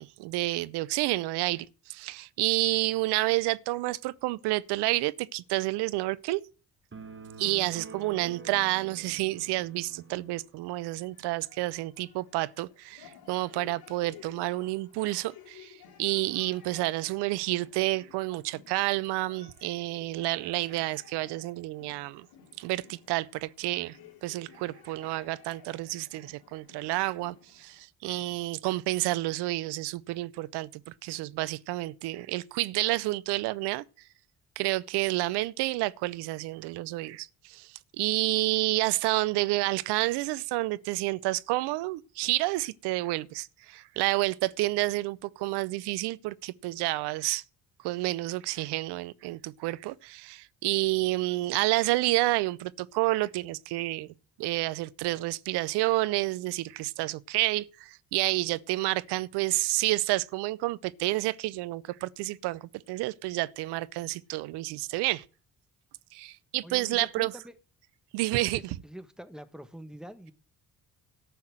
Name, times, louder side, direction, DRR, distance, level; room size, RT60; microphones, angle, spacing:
voice 1, 0.0-6.4 7.4-22.3 22.6-33.8 34.6-47.4 47.8-65.2 66.1-67.3 68.1-68.6, right 19 dB, 70° right, 0.7 m, -29 dB
sound 1, 6.9-10.5, right 4 dB, 30° right, 2.3 m, -46 dB
sound 2, 10.9-27.8, left 9 dB, 60° left, 3.2 m, -55 dB
voice 2, 66.6-67.6 68.3-70.3, equal, ahead, 1.6 m, -45 dB
13.5 x 5.8 x 7.7 m
hypercardioid pair, 45°, 42 cm